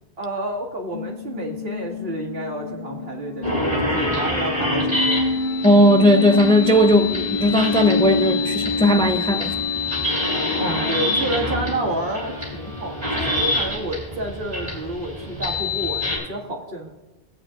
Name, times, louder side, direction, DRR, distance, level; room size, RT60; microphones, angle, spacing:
voice 1, 0.2-5.3 10.6-16.9, right 1 dB, 70° right, 2.2 m, -30 dB
sound 1, 0.9-13.4, left 2 dB, 65° left, 2.2 m, -28 dB
sound 2, 3.4-16.2, left 2 dB, 40° right, 4.4 m, -26 dB
voice 2, 5.6-9.6, left 1 dB, 10° left, 0.4 m, -17 dB
18.0 x 9.0 x 2.5 m
omnidirectional pair, 1.0 m